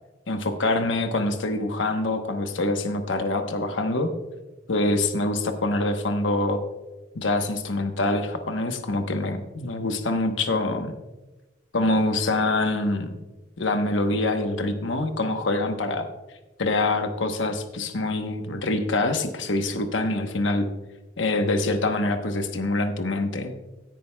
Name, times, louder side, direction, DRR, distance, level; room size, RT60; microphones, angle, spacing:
voice 1, 0.3-4.1 4.7-6.6 7.1-10.9 11.7-13.1 13.6-16.1 16.6-20.7 21.2-23.6, left 2 dB, 85° left, 7 dB, 1.0 m, -25 dB
17.0 x 10.0 x 2.2 m, 1.1 s
head